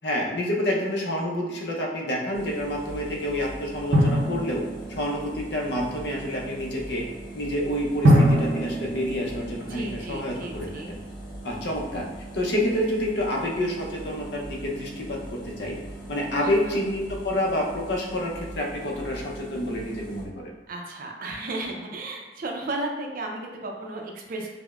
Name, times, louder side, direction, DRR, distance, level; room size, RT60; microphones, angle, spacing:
voice 1, 0.0-4.6 4.9-7.0 7.3-11.0 11.4-12.1 12.3-15.8 16.1-20.5, left 1 dB, 70° left, -1 dB, 0.6 m, -28 dB
sound 1, 2.3-20.2, right 1 dB, 25° left, 0.7 m, -40 dB
Drum, 3.9-5.4 8.0-10.2, equal, 90° right, 0.7 m, -23 dB
voice 2, 9.7-10.9 16.3-16.8 20.7-24.5, right 2 dB, 55° right, 1 dB, 0.5 m, -34 dB
5.0 x 2.1 x 2.3 m, 1.1 s
head